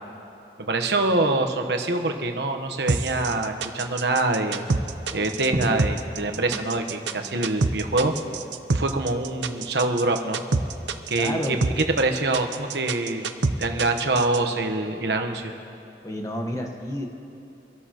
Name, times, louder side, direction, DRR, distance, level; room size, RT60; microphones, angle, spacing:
voice 1, 0.6-4.6 5.1-8.1 8.7-10.4 11.1-11.4 12.0-13.3 13.6-15.5, right 2 dB, 70° right, 5 dB, 1.1 m, -25 dB
sound 1, 2.9-14.4, right 3 dB, 90° right, 0.6 m, -26 dB
voice 2, 11.2-11.6 16.0-17.0, equal, 20° left, 2 dB, 1.2 m, -30 dB
25.0 x 12.5 x 3.0 m, 2.8 s
head